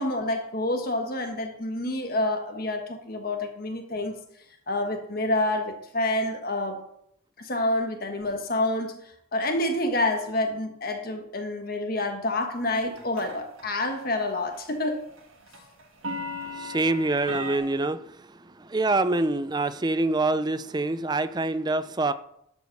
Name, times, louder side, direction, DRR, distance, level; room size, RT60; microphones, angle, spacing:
voice 1, 0.0-4.1 4.7-6.8 7.4-15.0, left 1 dB, 45° left, 4 dB, 1.4 m, -28 dB
sound 1, 12.7-13.7 13.9-14.3 14.5-17.6, left 1 dB, 80° right, 1.9 m, -36 dB
voice 2, 16.5-22.1, right 2 dB, 20° right, 13 dB, 0.4 m, -26 dB
12.0 x 5.2 x 6.5 m, 0.74 s
head